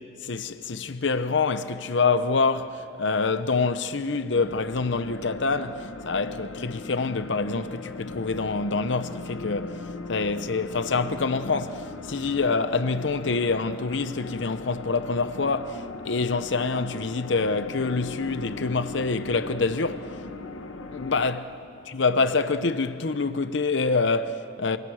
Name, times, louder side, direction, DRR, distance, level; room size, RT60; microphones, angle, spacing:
voice 1, 0.2-20.2 20.9-21.5 21.9-24.8, left 4 dB, 65° left, 0.8 m, -26 dB
sound 1, 4.3-21.3, left 3 dB, 90° left, 1.3 m, -39 dB
28.0 x 26.0 x 6.4 m
head